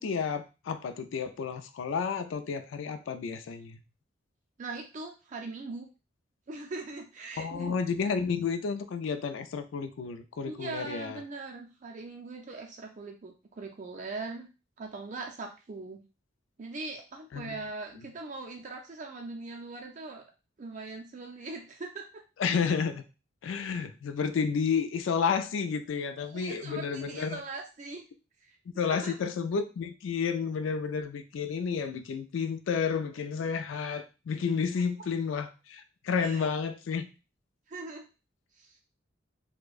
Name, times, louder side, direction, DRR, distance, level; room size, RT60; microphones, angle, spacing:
voice 1, 0.0-3.8 7.4-11.2 17.3-17.6 22.4-23.0 23.4-27.4 28.8-37.1, left 6 dB, 90° left, 9 dB, 0.4 m, -31 dB
voice 2, 4.6-5.9 6.5-7.8 10.4-14.5 14.8-16.0 16.6-20.2 20.6-22.2 26.3-28.1 28.4-29.1 36.2-36.4 37.7-38.1 38.6-38.8, right 3 dB, 40° right, 2 dB, 0.4 m, -41 dB
4.4 x 2.1 x 2.4 m, 0.31 s
head